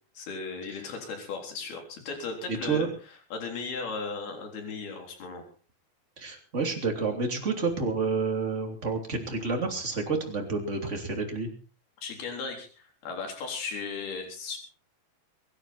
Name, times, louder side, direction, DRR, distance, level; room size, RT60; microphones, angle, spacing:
voice 1, 0.2-2.9 3.3-5.4 12.0-14.6, left 4 dB, 70° left, 3 dB, 5.6 m, -36 dB
voice 2, 2.5-2.9 6.2-11.5, right 4 dB, 20° right, 3 dB, 2.8 m, -29 dB
23.5 x 11.5 x 4.3 m, 0.38 s
omnidirectional pair, 4.6 m